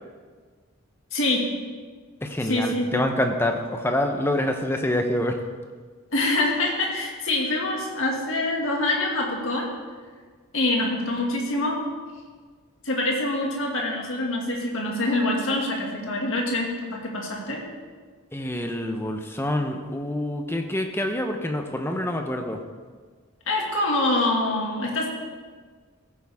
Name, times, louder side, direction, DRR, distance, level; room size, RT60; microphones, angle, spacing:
voice 1, 1.1-1.5 2.4-2.9 6.1-9.7 10.5-11.8 12.8-17.6 23.5-25.1, left 2 dB, 60° left, -1 dB, 2.2 m, -25 dB
voice 2, 2.2-5.4 18.3-22.6, left 1 dB, 10° left, 4 dB, 0.8 m, -26 dB
15.0 x 9.2 x 3.6 m, 1.5 s
head